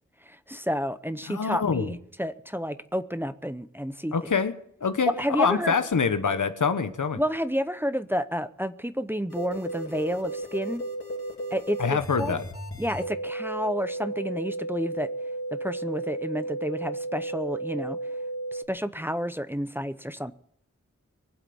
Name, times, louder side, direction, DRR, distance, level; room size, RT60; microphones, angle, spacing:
voice 1, 0.3-4.1 5.1-5.7 7.1-10.8 11.5-12.4 12.8-15.1 15.5-18.0 18.5-20.3, equal, 5° right, 0.7 m, -30 dB
voice 2, 1.3-1.9 4.1-4.5 4.8-5.1 5.4-7.2 11.8-12.4, left 5 dB, 85° left, 1.2 m, -25 dB
sound 1, 9.3-18.6, right 2 dB, 45° left, 3.3 m, -34 dB
23.0 x 7.9 x 7.1 m
wide cardioid pair, 70°, 30 cm